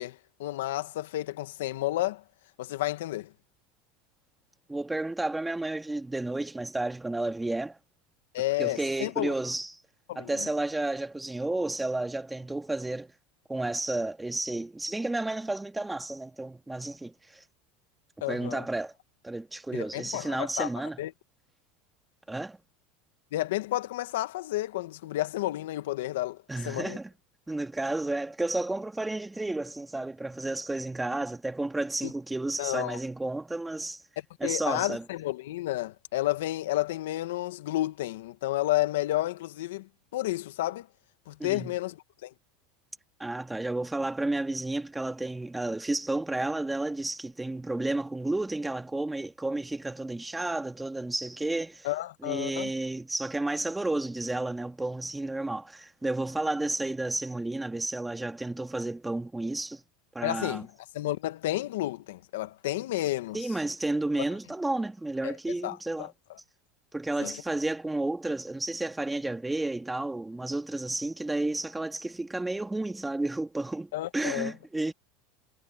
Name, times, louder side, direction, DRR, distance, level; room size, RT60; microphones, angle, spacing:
voice 1, 0.0-2.2 2.6-3.3 8.3-9.3 10.1-10.5 18.2-18.6 19.7-20.7 21.0-21.1 23.3-26.4 26.6-27.0 32.0-32.1 32.6-33.0 34.4-40.9 41.3-42.3 51.8-52.7 60.2-60.7 60.9-63.4 65.2-65.4 65.6-66.1 67.2-67.4 73.9-74.5, left 16 dB, 80° left, 1.5 m, -31 dB
voice 2, 4.7-7.8 8.6-9.8 10.2-13.1 13.5-17.4 18.3-18.9 19.2-21.0 22.3-22.6 26.5-27.1 27.5-34.0 34.4-35.0 41.4-41.7 43.2-51.9 52.2-59.8 60.1-60.7 63.3-66.1 66.9-74.9, right 2 dB, 10° right, 2.2 m, -32 dB
supercardioid pair, 105°, 0 cm